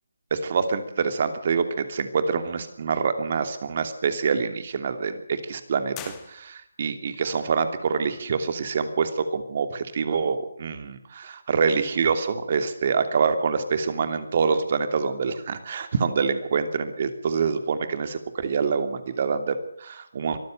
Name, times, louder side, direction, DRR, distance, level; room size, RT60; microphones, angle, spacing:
voice 1, 0.3-20.4, right 5 dB, 40° right, 9 dB, 2.9 m, -26 dB
sound 1, 5.9-6.9, left 11 dB, 15° left, 1.8 m, -42 dB
24.0 x 14.0 x 9.2 m, 0.68 s
figure-of-eight pair, 165°, 0 cm